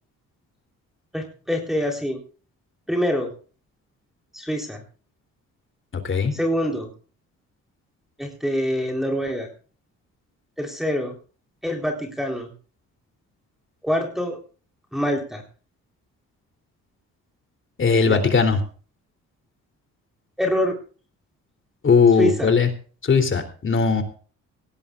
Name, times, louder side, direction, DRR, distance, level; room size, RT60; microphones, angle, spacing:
voice 1, 1.1-2.2 2.9-3.3 4.3-4.8 6.3-6.9 8.2-9.5 10.6-11.1 11.6-12.5 13.8-14.4 14.9-15.4 18.1-18.2 20.4-20.7 22.2-22.5, equal, ahead, 1 dB, 3.9 m, -25 dB
voice 2, 17.8-18.6 21.8-22.7 23.0-24.0, left 5 dB, 40° left, 7 dB, 3.3 m, -18 dB
18.5 x 17.5 x 2.5 m, 0.40 s
cardioid pair, 90°, 30 cm